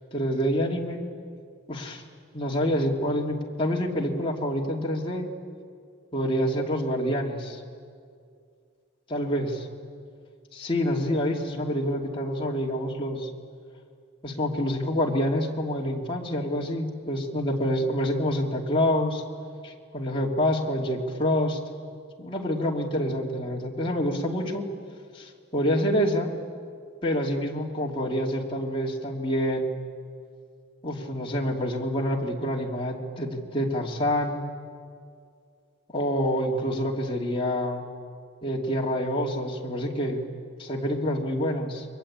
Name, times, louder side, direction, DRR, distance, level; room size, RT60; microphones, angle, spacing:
voice 1, 0.1-1.0 1.7-2.0 2.3-5.3 6.1-7.6 9.1-9.5 10.5-13.3 14.2-19.2 19.6-21.6 22.2-24.6 25.1-26.3 27.0-29.8 30.8-34.4 35.9-37.8 38.4-40.2 40.6-41.9, equal, 25° left, -2 dB, 2.8 m, -27 dB
30.0 x 22.5 x 8.8 m, 2.2 s
head